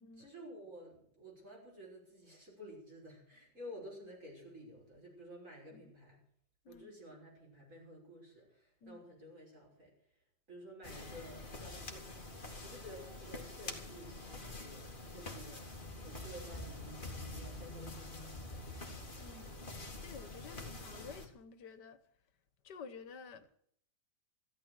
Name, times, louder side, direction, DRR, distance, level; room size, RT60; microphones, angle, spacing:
voice 1, 0.0-6.2 6.6-19.0, equal, 45° right, 6.2 m, -53 dB
sound 1, 10.8-21.3, left 2 dB, 30° left, 2.4 m, -46 dB
voice 2, 19.2-19.6 20.0-22.0 22.6-23.5, left 5 dB, 85° left, 1.9 m, -51 dB
14.5 x 12.5 x 6.3 m
omnidirectional pair, 1.8 m